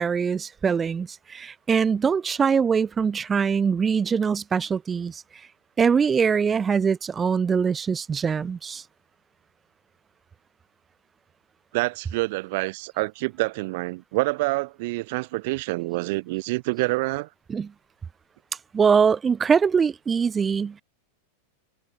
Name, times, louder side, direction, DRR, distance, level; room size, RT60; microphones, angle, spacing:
voice 1, 0.0-5.2 5.8-8.8 17.5-17.7 18.7-20.8, right 6 dB, 20° right, 0.5 m, -23 dB
voice 2, 11.7-17.3, right 23 dB, 50° right, 1.0 m, -27 dB
figure-of-eight pair, 90°, 0 cm